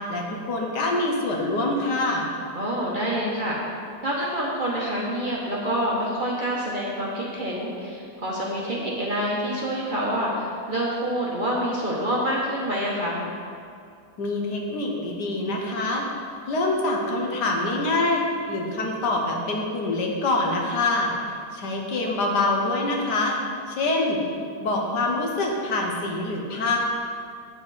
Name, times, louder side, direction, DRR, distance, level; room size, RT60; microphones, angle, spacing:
voice 1, 0.1-2.3 14.2-16.1 16.5-23.4 23.7-24.2 24.6-26.8, left 2 dB, 75° left, 0 dB, 1.6 m, -25 dB
voice 2, 2.5-3.6 4.0-13.2, equal, 35° right, -4 dB, 1.0 m, -27 dB
8.4 x 6.8 x 4.1 m, 2.3 s
omnidirectional pair, 1.8 m